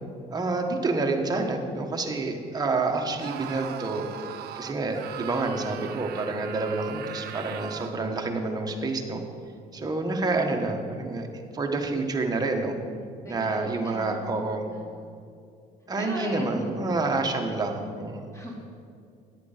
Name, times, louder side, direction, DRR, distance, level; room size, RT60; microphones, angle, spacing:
voice 1, 0.3-4.1 4.5-9.2 9.7-11.3 11.5-12.7 13.2-14.6 15.9-18.3, right 3 dB, 25° right, 2 dB, 1.3 m, -28 dB
Screaming, 3.2-8.0, right 10 dB, 70° right, 0.7 m, -39 dB
voice 2, 13.2-15.1 16.0-17.2 18.3-18.5, equal, 20° left, -3 dB, 3.0 m, -39 dB
10.5 x 8.3 x 5.0 m, 2.4 s
cardioid pair, 110°, 17 cm